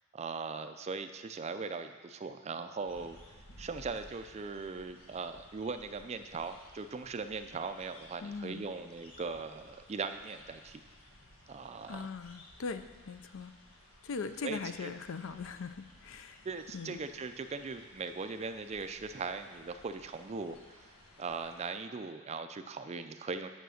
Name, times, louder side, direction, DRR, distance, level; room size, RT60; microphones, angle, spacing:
voice 1, 0.1-3.2 3.6-10.8 11.5-12.1 14.4-14.9 16.4-20.9 21.2-23.5, right 4 dB, 30° right, 9 dB, 0.4 m, -39 dB
sound 1, 2.9-21.7, left 1 dB, 85° left, 1.6 m, -57 dB
voice 2, 8.2-8.7 11.9-13.5 14.0-16.5 16.7-17.0, left 4 dB, 60° left, 10 dB, 0.5 m, -40 dB
9.2 x 6.6 x 6.4 m, 1.4 s
head